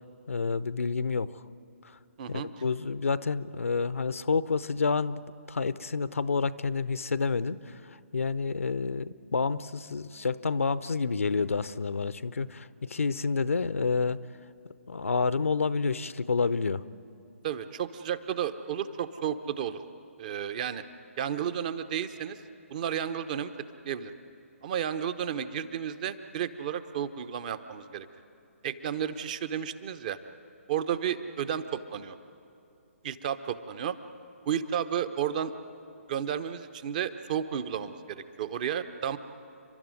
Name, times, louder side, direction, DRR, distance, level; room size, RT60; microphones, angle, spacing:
voice 1, 0.3-1.4 1.8-2.0 2.3-5.2 5.5-7.7 8.1-14.2 14.9-16.8, left 4 dB, 70° left, 16 dB, 0.7 m, -29 dB
voice 2, 17.4-19.8 20.2-20.8 21.2-22.4 22.7-23.5 23.8-24.1 24.6-28.1 28.6-30.2 30.7-32.2 33.0-34.0 34.4-35.5 36.1-39.2, right 9 dB, 35° right, 12 dB, 0.9 m, -32 dB
30.0 x 12.0 x 9.5 m, 2.7 s
figure-of-eight pair, 135°, 8 cm